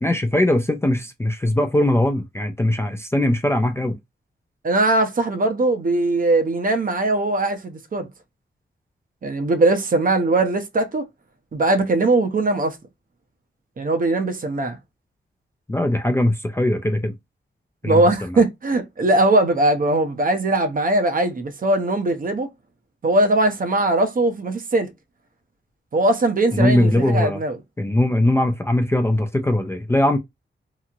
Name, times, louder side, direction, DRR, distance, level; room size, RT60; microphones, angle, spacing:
voice 1, 0.0-4.0 15.7-17.1 17.8-18.4 26.5-27.4 27.8-30.2, left 1 dB, 10° left, 0.4 m, -20 dB
voice 2, 4.6-8.1 9.2-11.0 11.5-12.8 13.8-14.8 17.8-22.5 23.0-24.9 25.9-27.6, right 2 dB, 45° right, 0.6 m, -20 dB
2.9 x 2.7 x 2.4 m
wide cardioid pair, 120°, 21 cm